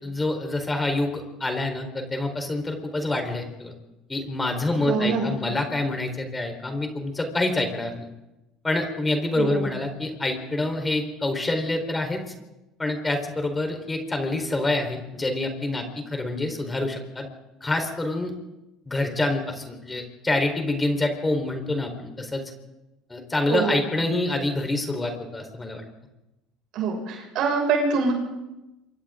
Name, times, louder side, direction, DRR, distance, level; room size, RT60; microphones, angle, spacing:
voice 1, 0.0-3.7 4.1-8.1 8.6-12.2 12.8-17.3 17.6-18.3 18.9-22.4 23.1-25.8, left 2 dB, 15° left, 4 dB, 4.4 m, -27 dB
voice 2, 4.7-5.3 9.3-9.7 23.5-23.9 26.7-28.1, right 4 dB, 65° right, 1 dB, 6.5 m, -25 dB
27.5 x 24.5 x 3.9 m, 0.98 s
supercardioid pair, 95°, 0 cm